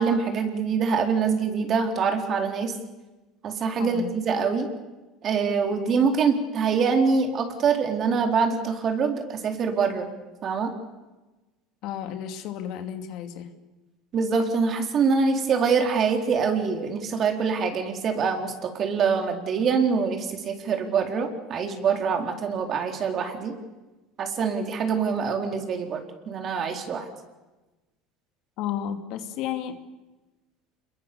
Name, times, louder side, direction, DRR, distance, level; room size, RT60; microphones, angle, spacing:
voice 1, 0.0-2.7 3.4-4.7 5.2-10.1 10.4-10.7 14.1-23.5 24.2-27.1, right 5 dB, 40° right, 4 dB, 4.3 m, -24 dB
voice 2, 3.8-4.1 11.8-13.5 28.6-29.8, left 10 dB, 65° left, 7 dB, 2.6 m, -32 dB
27.5 x 22.0 x 7.1 m, 1.1 s
supercardioid pair, 110°, 0 cm